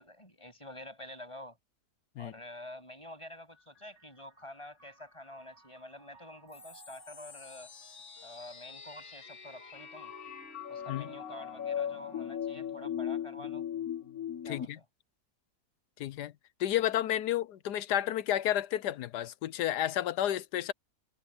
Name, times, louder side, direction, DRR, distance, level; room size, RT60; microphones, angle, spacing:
voice 1, 0.0-1.6 2.2-7.7 8.2-10.1 10.7-13.7 14.4-14.8, left 1 dB, 20° left, 7.9 m, -48 dB
sound 1, 3.5-12.4, right 1 dB, 45° right, 7.7 m, -57 dB
sound 2, 6.5-14.7, left 9 dB, 65° left, 1.9 m, -39 dB
voice 2, 14.5-14.8 16.0-16.3 16.6-20.7, left 12 dB, 85° left, 1.3 m, -31 dB
omnidirectional pair, 1.7 m